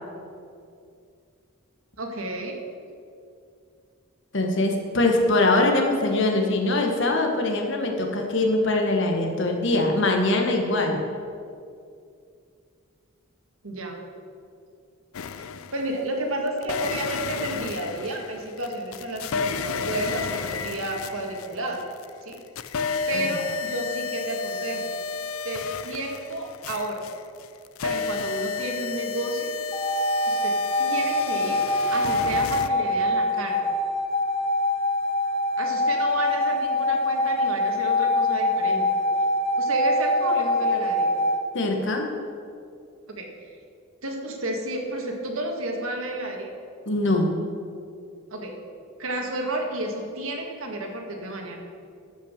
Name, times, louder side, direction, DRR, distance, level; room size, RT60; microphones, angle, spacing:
voice 1, 2.0-2.6 13.6-14.0 15.7-21.8 22.2-22.4 23.1-24.9 25.4-27.0 27.8-29.5 30.3-30.5 30.8-31.6 31.9-33.6 35.6-38.8 39.6-41.1 43.1-43.3 44.0-46.5 48.3-48.5 49.0-51.6, right 1 dB, 80° right, 1 dB, 1.8 m, -31 dB
voice 2, 4.3-11.0 23.2-23.3 41.5-42.1 46.9-47.3, left 2 dB, 60° left, 2 dB, 1.4 m, -22 dB
sound 1, 15.1-16.0 16.6-22.0 22.3-32.7, left 5 dB, 80° left, 0.5 m, -32 dB
sound 2, 29.7-41.4, left 1 dB, 25° left, 1.2 m, -24 dB
14.0 x 5.8 x 6.6 m, 2.4 s
head